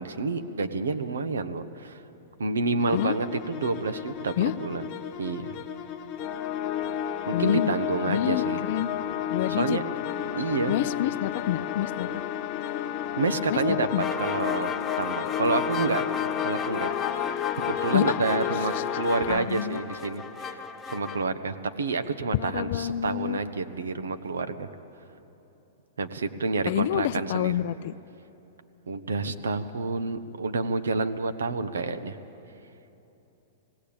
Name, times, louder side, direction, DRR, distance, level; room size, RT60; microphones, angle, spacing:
voice 1, 0.0-2.0 2.4-4.9 5.2-5.5 7.3-8.6 9.5-9.8 10.3-10.7 13.2-13.9 14.2-14.7 15.0-16.0 16.4-16.9 17.5-20.6 20.9-24.7 26.0-27.5 28.9-32.2, right 3 dB, 90° right, 9 dB, 1.1 m, -29 dB
sound 1, 2.8-19.4, left 10 dB, 35° left, 1.1 m, -32 dB
voice 2, 7.3-7.8 8.1-8.9 9.3-9.8 10.7-12.1 13.5-13.6 13.9-14.1 17.9-18.2 18.5-18.9 19.3-19.8 22.3-23.4 26.6-27.9, left 13 dB, 60° left, 16 dB, 0.5 m, -28 dB
sound 2, 14.0-21.2, left 6 dB, 15° left, 0.8 m, -35 dB
19.0 x 17.5 x 8.8 m, 3.0 s
hypercardioid pair, 125°, 0 cm